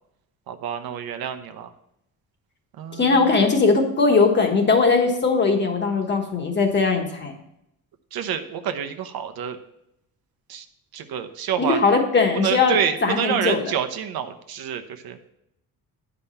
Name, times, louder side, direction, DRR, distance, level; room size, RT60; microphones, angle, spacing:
voice 1, 0.5-1.7 2.8-3.2 8.1-9.6 10.5-10.6 10.9-11.8 12.3-15.2, right 8 dB, 85° right, 8 dB, 0.9 m, -28 dB
voice 2, 3.0-7.3 11.6-13.7, left 4 dB, 30° left, 3 dB, 1.3 m, -20 dB
10.0 x 5.1 x 5.7 m, 0.81 s
cardioid pair, 175°, 35 cm